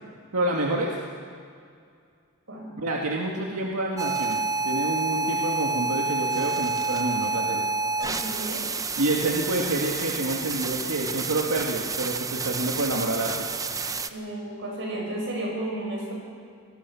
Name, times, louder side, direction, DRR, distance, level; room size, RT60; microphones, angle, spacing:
voice 1, 0.3-1.0 2.8-7.6 9.0-13.5, right 2 dB, 90° right, -1 dB, 2.0 m, -28 dB
sound 1, 4.0-14.1, right 3 dB, 15° right, 0.7 m, -29 dB
voice 2, 8.0-8.7 14.1-16.1, right 1 dB, 60° right, -1 dB, 7.4 m, -33 dB
25.0 x 19.0 x 7.1 m, 2.3 s
head